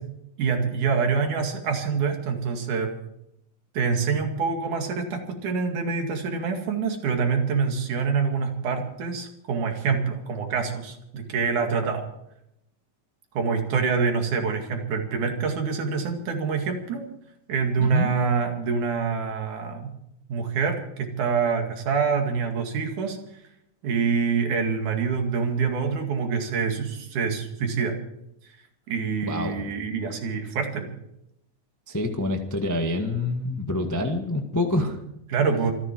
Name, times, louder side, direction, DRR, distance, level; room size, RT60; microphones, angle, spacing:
voice 1, 0.4-2.9 3.8-12.0 13.4-17.0 17.5-19.9 20.3-23.2 23.8-28.0 28.9-30.9 35.3-35.7, right 5 dB, 80° right, 4 dB, 3.7 m, -26 dB
voice 2, 17.8-18.1 29.3-29.7 31.9-35.0, left 1 dB, 15° left, 4 dB, 0.7 m, -27 dB
26.0 x 10.5 x 4.7 m, 0.79 s
omnidirectional pair, 3.4 m